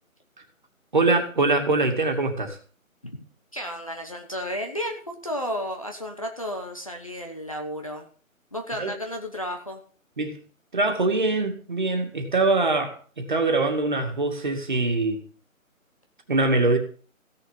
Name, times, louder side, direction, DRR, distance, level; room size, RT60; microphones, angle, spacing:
voice 1, 0.9-2.6 8.8-8.9 10.2-10.4 10.7-15.2 16.3-16.8, right 3 dB, 35° right, 4 dB, 2.3 m, -23 dB
voice 2, 3.5-8.1 8.5-9.8, equal, 25° left, 3 dB, 1.1 m, -33 dB
16.0 x 6.8 x 7.3 m, 0.41 s
hypercardioid pair, 180°, 41 cm